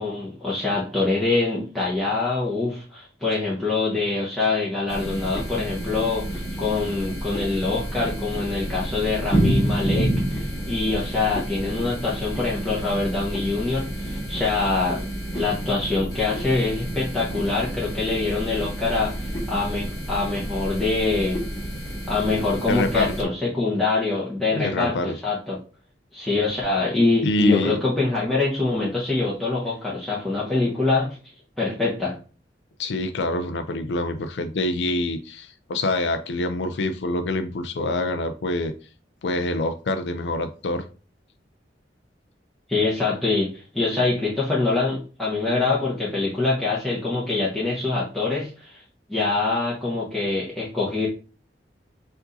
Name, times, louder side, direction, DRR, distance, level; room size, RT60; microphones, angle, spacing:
voice 1, 0.0-15.0 15.3-21.4 22.1-25.6 26.1-31.2 31.6-32.2 42.7-48.8 49.1-51.1, left 3 dB, ahead, -8 dB, 1.0 m, -24 dB
sound 1, 4.9-23.2, right 1 dB, 20° left, 1.4 m, -29 dB
voice 2, 22.7-23.3 24.5-25.2 27.2-27.8 32.8-38.7 39.2-40.8, left 2 dB, 75° left, 8 dB, 0.4 m, -25 dB
4.6 x 2.6 x 4.0 m, 0.36 s
head